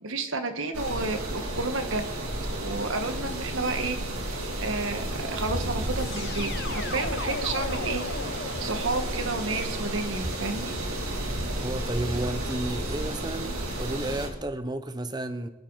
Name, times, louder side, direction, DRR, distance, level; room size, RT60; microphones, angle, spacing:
voice 1, 0.0-2.0 2.6-4.0 4.6-10.7, right 3 dB, 65° right, 1.4 m, -31 dB
sound 1, 0.7-14.3, right 1 dB, 85° right, 2.6 m, -32 dB
sound 2, 6.0-10.9, left 4 dB, 50° left, 0.8 m, -38 dB
voice 2, 11.5-15.5, right 1 dB, 20° right, 0.7 m, -32 dB
24.5 x 9.2 x 4.0 m
head